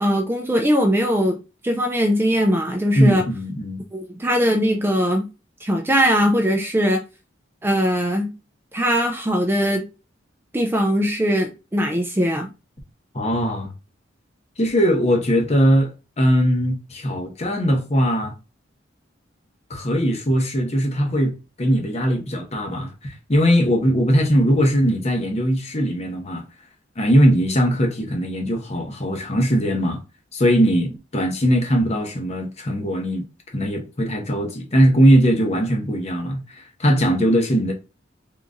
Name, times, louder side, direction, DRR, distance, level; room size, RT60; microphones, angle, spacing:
voice 1, 0.0-3.2 3.9-5.3 5.6-7.0 7.6-8.3 8.7-9.9 10.5-12.5, equal, 10° right, 0.4 m, -20 dB
voice 2, 3.0-3.8 13.1-13.7 14.6-15.9 16.2-18.3 19.7-26.4 27.0-30.0 30.3-33.2 33.5-37.7, equal, 35° left, 0.8 m, -20 dB
3.7 x 3.0 x 2.5 m
head